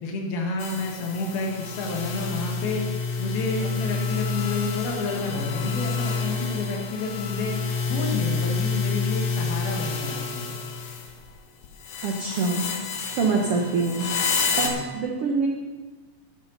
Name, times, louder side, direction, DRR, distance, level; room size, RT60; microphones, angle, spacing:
voice 1, 0.0-2.8 3.2-7.6 7.8-10.6 14.5-14.8, left 3 dB, 90° left, 0 dB, 3.6 m, -30 dB
sound 1, 0.6-11.3 11.6-14.7, left 4 dB, 65° left, 2.2 m, -29 dB
voice 2, 12.0-12.6 13.2-14.1 14.6-15.5, right 4 dB, 70° right, 0 dB, 1.4 m, -25 dB
13.0 x 11.0 x 4.0 m, 1.3 s
omnidirectional pair, 4.2 m